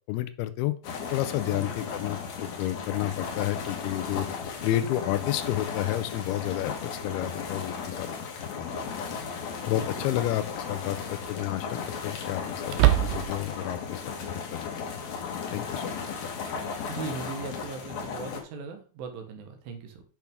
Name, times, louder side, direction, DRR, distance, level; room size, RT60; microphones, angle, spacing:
voice 1, 0.1-0.7 1.1-4.3 4.6-8.1 8.6-8.7 9.6-11.8 12.0-12.7 13.0-14.7 15.5-16.0, left 14 dB, 85° left, 12 dB, 2.6 m, -30 dB
sound 1, 0.8-18.4, left 5 dB, 60° left, 2.1 m, -35 dB
voice 2, 1.5-1.8 9.7-10.2 16.5-20.0, right 4 dB, 70° right, 5 dB, 2.7 m, -39 dB
sound 2, 8.1-8.2 10.0-10.4 10.8-10.9 12.7-13.6, right 16 dB, 90° right, 2.6 m, -24 dB
8.3 x 6.0 x 3.5 m, 0.39 s
omnidirectional pair, 4.4 m